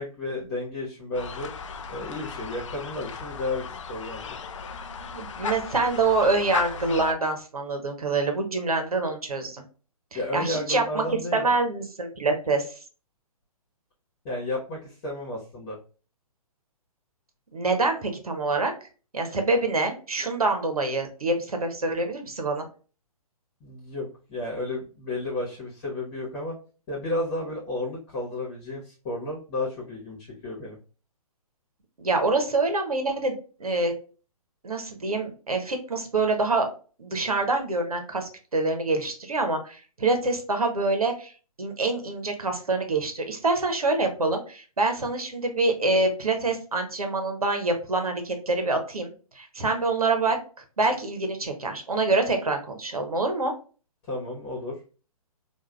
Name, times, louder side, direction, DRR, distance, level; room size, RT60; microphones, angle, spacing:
voice 1, 0.0-1.5 1.9-4.4 10.1-11.5 14.2-15.8 23.6-26.6 26.9-30.8 54.1-54.8, left 2 dB, 30° left, -5 dB, 1.3 m, -32 dB
sound 1, 1.1-7.1, left 6 dB, 55° left, 0.4 m, -36 dB
voice 2, 5.0-9.6 10.1-11.0 11.3-12.7 17.5-18.7 19.1-22.6 32.0-33.9 34.6-36.7 37.0-41.3 41.6-50.4 50.8-53.5, right 3 dB, 75° right, 5 dB, 1.0 m, -26 dB
4.6 x 2.5 x 2.3 m, 0.37 s
figure-of-eight pair, 125°, 19 cm